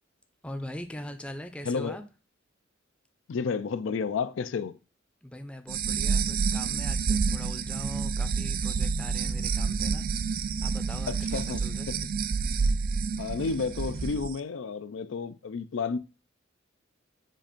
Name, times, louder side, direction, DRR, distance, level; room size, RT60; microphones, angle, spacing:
voice 1, 0.4-2.0 5.2-10.1 10.6-11.9, left 1 dB, 5° left, 0.5 m, -41 dB
voice 2, 1.6-2.0 3.3-4.8 11.1-11.6 11.9-12.0 13.2-16.0, left 5 dB, 70° left, 0.4 m, -31 dB
sound 1, 5.7-14.3, right 5 dB, 50° right, 0.4 m, -29 dB
7.5 x 2.5 x 5.1 m
head